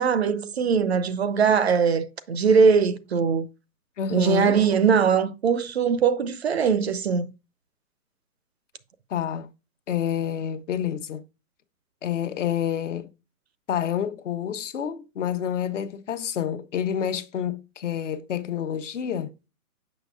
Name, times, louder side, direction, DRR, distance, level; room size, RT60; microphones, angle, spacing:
voice 1, 0.0-3.5 4.1-7.3, right 6 dB, 45° right, 0.5 m, -21 dB
voice 2, 4.0-4.6 9.1-9.5 9.9-11.2 12.0-13.1 13.7-19.3, left 9 dB, 55° left, 0.9 m, -28 dB
6.9 x 6.2 x 2.3 m
hypercardioid pair, 145°, 45 cm